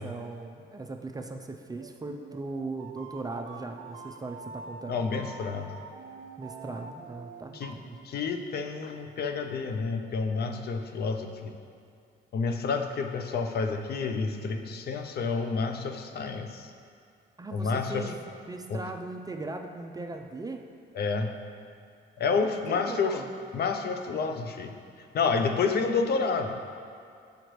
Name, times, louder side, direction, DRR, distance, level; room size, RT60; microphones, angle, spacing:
voice 1, 0.0-5.0 6.4-8.1 12.7-13.0 17.4-18.2 18.5-20.6 22.4-23.3, right 3 dB, 20° right, 4 dB, 0.4 m, -39 dB
sound 1, 1.8-7.7, right 4 dB, 90° right, 0.4 m, -45 dB
voice 2, 4.9-5.7 7.5-7.7 8.0-11.6 12.3-16.7 17.5-18.0 18.7-18.8 21.0-21.3 22.2-23.2 23.5-24.7 25.1-26.6, left 4 dB, 55° left, 6 dB, 0.5 m, -29 dB
6.4 x 5.0 x 3.1 m, 2.4 s
cardioid pair, 90°, 20 cm